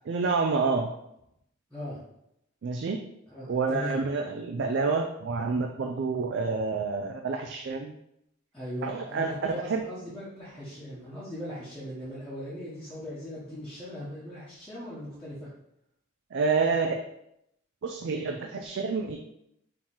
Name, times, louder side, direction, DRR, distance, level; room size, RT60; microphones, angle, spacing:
voice 1, 0.1-0.9 2.6-3.0 3.5-8.0 8.8-9.8 16.3-17.0 17.8-19.2, right 4 dB, 60° right, 3 dB, 0.3 m, -28 dB
voice 2, 1.7-2.0 3.3-4.0 8.5-15.5, equal, 5° left, -11 dB, 1.0 m, -39 dB
4.5 x 2.9 x 3.7 m, 0.80 s
head